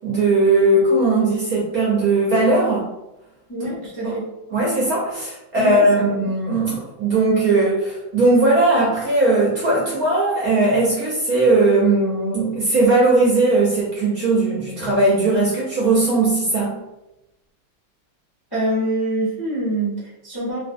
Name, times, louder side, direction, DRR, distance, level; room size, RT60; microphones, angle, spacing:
voice 1, 0.0-2.8 4.0-4.1 4.5-16.8, right 2 dB, 60° right, -5 dB, 1.0 m, -18 dB
voice 2, 3.5-4.3 5.5-6.1 18.5-20.6, right 1 dB, 20° left, -9 dB, 0.7 m, -25 dB
3.3 x 2.6 x 2.6 m, 0.91 s
omnidirectional pair, 2.2 m